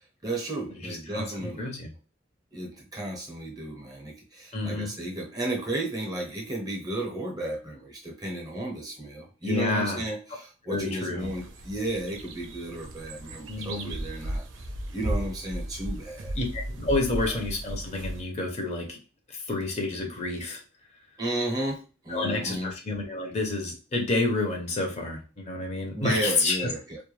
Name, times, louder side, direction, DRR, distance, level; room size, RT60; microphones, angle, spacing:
voice 1, 0.2-1.6 2.5-14.4 14.9-16.3 21.2-22.7 25.9-27.0, right 1 dB, 20° right, 0 dB, 0.7 m, -33 dB
voice 2, 0.8-1.9 4.5-4.9 9.4-10.0 10.6-11.3 13.5-13.9 16.4-19.0 19.3-20.6 22.1-26.7, left 2 dB, 35° left, 2 dB, 0.6 m, -29 dB
sound 1, 11.2-18.2, right 1 dB, 80° right, 0.5 m, -35 dB
2.2 x 2.2 x 3.1 m, 0.33 s
head